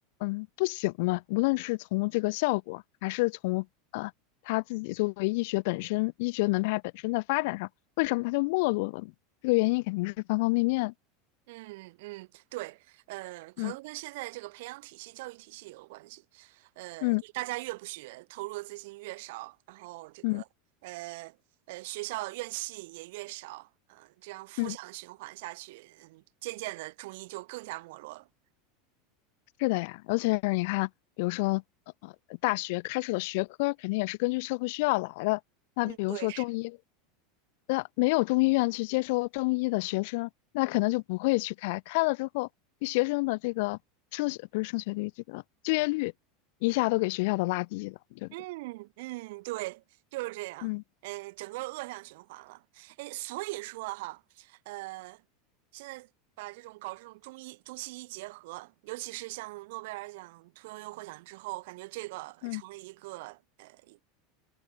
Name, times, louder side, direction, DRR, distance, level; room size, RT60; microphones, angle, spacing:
voice 1, 0.2-3.7 3.9-4.1 4.4-7.7 8.0-9.1 9.4-10.9 13.6-13.7 17.0-17.2 20.2-20.4 24.6-24.8 29.6-30.9 31.2-31.6 32.0-32.1 32.4-35.4 35.8-36.7 37.7-42.5 42.8-43.8 44.1-46.1 46.6-48.3 50.6-50.8 62.4-62.6, left 25 dB, 55° left, 6.3 m, -28 dB
voice 2, 11.5-20.5 20.8-21.4 21.7-28.3 35.8-36.4 48.3-49.8 50.1-50.7 51.0-55.2 55.7-56.1 56.4-64.0, right 21 dB, 55° right, 7.3 m, -41 dB
figure-of-eight pair, 80°, 0 cm